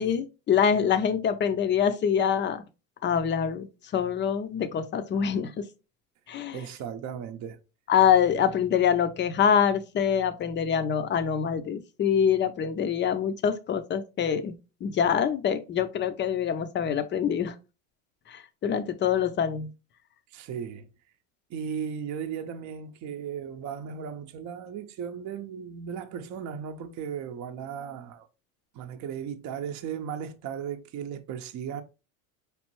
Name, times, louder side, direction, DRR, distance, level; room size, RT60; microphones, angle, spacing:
voice 1, 0.0-2.6 3.0-5.7 6.3-6.6 7.9-17.5 18.3-19.7, left 8 dB, 25° left, 0.5 m, -25 dB
voice 2, 6.5-7.6 20.3-20.9 21.5-28.3 28.7-31.8, right 8 dB, 45° right, 0.7 m, -36 dB
5.1 x 3.3 x 3.0 m
supercardioid pair, 100°, 41 cm